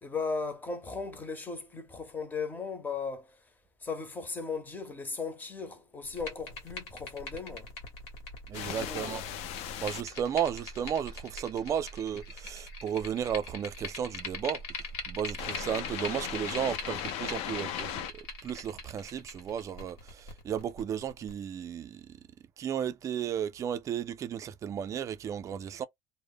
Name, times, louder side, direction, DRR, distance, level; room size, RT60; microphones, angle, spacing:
voice 1, 0.0-3.4 3.8-7.7 8.6-9.2, left 4 dB, 15° left, 0.6 m, -37 dB
sound 1, 6.0-21.3, left 2 dB, 75° left, 1.0 m, -42 dB
sound 2, 8.5-10.0 15.4-18.1, left 11 dB, 60° left, 0.4 m, -37 dB
voice 2, 8.5-9.2 9.8-14.6 15.1-22.2 22.6-25.8, right 9 dB, 30° right, 0.3 m, -34 dB
2.0 x 2.0 x 3.4 m
cardioid pair, 135°, 11 cm